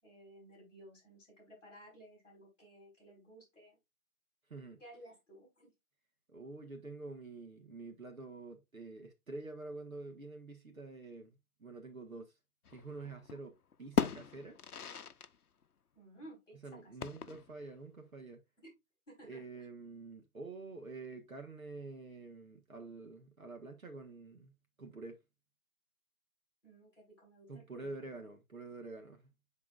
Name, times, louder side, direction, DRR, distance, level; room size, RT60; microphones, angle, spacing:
voice 1, 0.0-3.8 4.8-5.7 15.9-16.9 18.6-18.7 19.1-19.4 26.6-28.1, right 1 dB, 5° left, 3.4 m, -56 dB
voice 2, 4.5-4.8 6.3-12.3 12.7-14.6 16.6-18.4 19.2-24.5 24.8-25.2 27.5-29.3, right 3 dB, 65° right, 1.6 m, -47 dB
sound 1, 12.6-13.4 13.7-15.3 15.6-15.7 17.0-17.6, left 7 dB, 80° left, 0.7 m, -37 dB
10.5 x 3.7 x 2.5 m
figure-of-eight pair, 170°, 44 cm